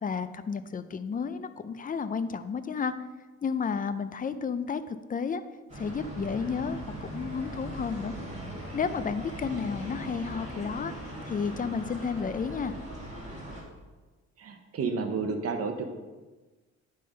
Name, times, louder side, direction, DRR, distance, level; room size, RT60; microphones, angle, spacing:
voice 1, 0.0-2.9 3.4-5.4 5.8-8.1 8.7-10.9 11.2-12.7, left 5 dB, 30° left, 11 dB, 0.5 m, -32 dB
sound 1, 5.7-13.6, right 1 dB, 25° right, 2.6 m, -40 dB
voice 2, 14.4-16.0, right 4 dB, 50° right, 5 dB, 1.0 m, -31 dB
10.5 x 3.8 x 5.1 m, 1.2 s
cardioid pair, 90°, 30 cm